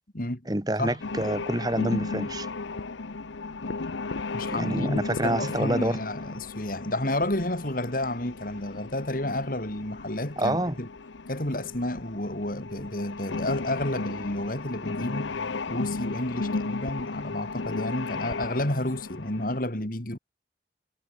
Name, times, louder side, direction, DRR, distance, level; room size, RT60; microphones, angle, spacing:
voice 1, 0.5-2.5 4.5-6.0 10.4-10.7, right 1 dB, 20° right, 1.3 m, -27 dB
sound 1, 1.0-19.6, left 3 dB, 80° left, 0.9 m, -35 dB
voice 2, 4.3-10.9 11.3-15.4 15.7-20.2, left 1 dB, 45° left, 2.9 m, -31 dB
head